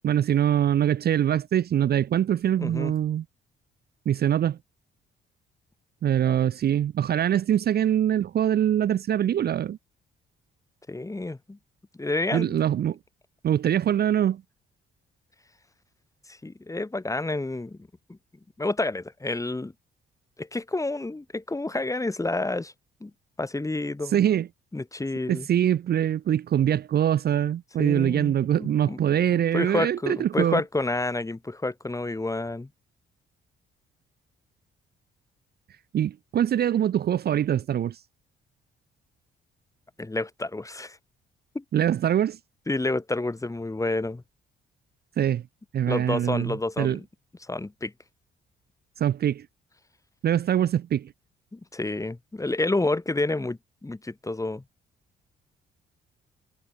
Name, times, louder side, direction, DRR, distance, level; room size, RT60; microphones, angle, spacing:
voice 1, 0.0-3.2 4.1-4.6 6.0-9.8 12.3-13.0 13.4-14.4 24.1-24.5 25.3-30.6 35.9-38.0 41.7-42.4 45.2-45.4 45.7-47.0 49.0-49.5 50.2-51.1, right 10 dB, 50° right, 0.7 m, -23 dB
voice 2, 2.6-2.9 6.3-6.4 10.9-11.6 11.9-12.6 16.3-18.2 18.6-19.7 20.4-22.7 23.0-23.1 23.4-24.2 24.7-25.5 27.8-29.0 29.3-32.7 40.0-41.0 41.5-41.6 42.7-44.2 45.9-47.0 47.4-47.9 51.5-54.6, left 2 dB, 15° left, 5.7 m, -29 dB
cardioid pair, 90°, 20 cm